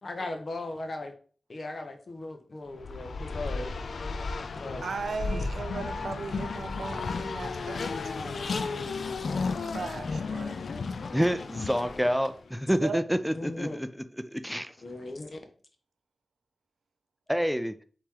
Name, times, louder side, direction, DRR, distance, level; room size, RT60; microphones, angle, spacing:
voice 1, 0.0-1.1 1.5-3.8 4.5-4.8 5.3-5.4 13.3-13.8 14.8-15.4, left 2 dB, 55° left, 0.9 m, -37 dB
Race car auto racing, 2.7-12.4, left 4 dB, 75° left, 0.4 m, -34 dB
voice 2, 4.8-8.9 9.4-10.5 12.7-13.0, right 4 dB, 80° right, 0.4 m, -38 dB
voice 3, 11.1-13.9 14.3-14.7 17.3-17.7, equal, ahead, 0.4 m, -27 dB
4.3 x 3.0 x 3.8 m
cardioid pair, 50°, 0 cm